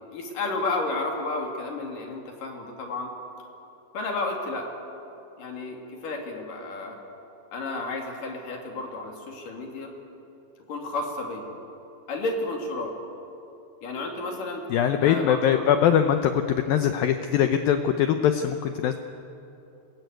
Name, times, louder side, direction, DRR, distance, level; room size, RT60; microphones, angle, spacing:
voice 1, 0.1-3.1 3.9-4.7 5.4-7.0 7.5-9.9 10.7-11.5 12.1-12.9 13.8-14.6 15.0-15.8, left 2 dB, 50° left, 1 dB, 4.1 m, -32 dB
voice 2, 14.7-19.0, left 9 dB, 85° left, 8 dB, 2.0 m, -22 dB
25.5 x 21.0 x 9.3 m, 2.8 s
omnidirectional pair, 5.2 m